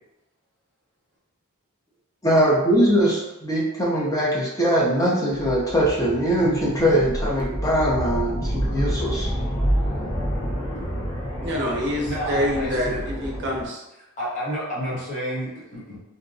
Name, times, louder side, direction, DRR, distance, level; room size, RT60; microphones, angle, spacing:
voice 1, 2.2-9.3, equal, 15° left, -4 dB, 0.5 m, -21 dB
sound 1, 5.4-13.7, equal, 90° left, 0.9 m, -28 dB
voice 2, 11.4-13.8, equal, 50° right, -1 dB, 0.5 m, -26 dB
voice 3, 12.0-13.0 14.2-16.0, equal, 35° left, -8 dB, 0.9 m, -30 dB
2.6 x 2.1 x 2.5 m, 0.96 s
head